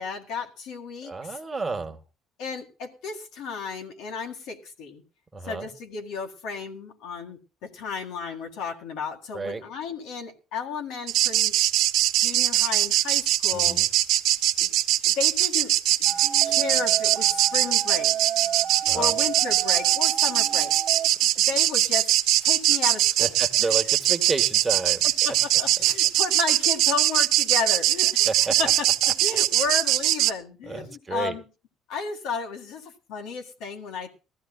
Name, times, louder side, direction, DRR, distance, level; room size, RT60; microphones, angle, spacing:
voice 1, 0.0-1.4 2.4-5.0 5.4-11.5 12.2-13.8 14.6-14.7 15.0-15.7 16.0-16.1 16.5-18.3 18.9-20.7 21.0-22.1 22.4-23.3 23.6-23.9 25.2-28.3 28.6-31.4 31.9-34.2, left 5 dB, 80° left, 3 dB, 2.0 m, -33 dB
voice 2, 1.0-2.0 5.3-5.7 9.3-9.6 13.5-13.9 18.9-19.1 23.2-25.1 28.2-28.5 29.0-29.1 30.7-31.3, right 3 dB, 15° right, 6 dB, 1.1 m, -31 dB
sound 1, 11.1-30.3, right 15 dB, 75° right, 0.7 m, -22 dB
sound 2, 16.0-21.1, right 9 dB, 50° right, 1.2 m, -32 dB
20.5 x 14.5 x 2.3 m, 0.32 s
cardioid pair, 165°, 0 cm